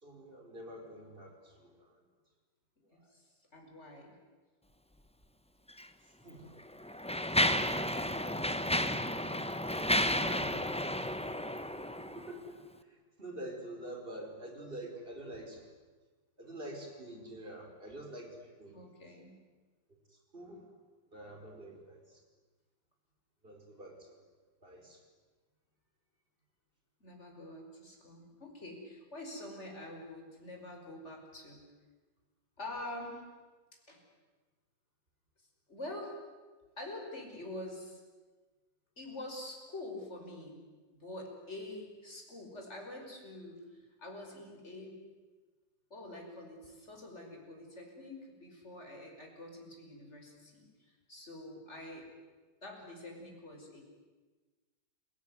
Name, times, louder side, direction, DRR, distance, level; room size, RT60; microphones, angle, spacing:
voice 1, 0.0-1.9 6.2-6.5 12.0-15.6 16.4-18.9 20.3-20.7 21.1-22.2 23.4-24.2 24.6-25.0, right 1 dB, 30° right, 3 dB, 4.8 m, -47 dB
voice 2, 3.5-4.1 9.7-10.8 18.7-19.4 27.0-31.6 32.6-33.2 33.9-34.0 35.7-36.2 36.8-38.0 39.0-40.6 40.9-45.0 45.9-52.1 52.6-53.8, left 1 dB, 35° left, 1 dB, 5.9 m, -46 dB
Mechanisms, 5.7-5.9 6.6-12.3, left 1 dB, 5° left, 0.5 m, -32 dB
29.5 x 18.0 x 9.6 m, 1.3 s
omnidirectional pair, 2.0 m